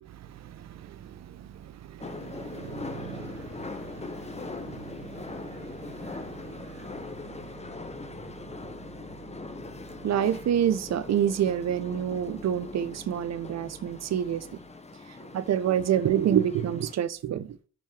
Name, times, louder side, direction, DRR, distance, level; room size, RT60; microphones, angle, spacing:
voice 1, 0.0-8.1 10.0-14.5 15.3-17.6, right 9 dB, 50° right, 0.9 m, -29 dB
sound 1, 2.0-17.0, left 3 dB, 20° left, 1.3 m, -41 dB
6.6 x 6.2 x 7.4 m
hypercardioid pair, 60°, 35 cm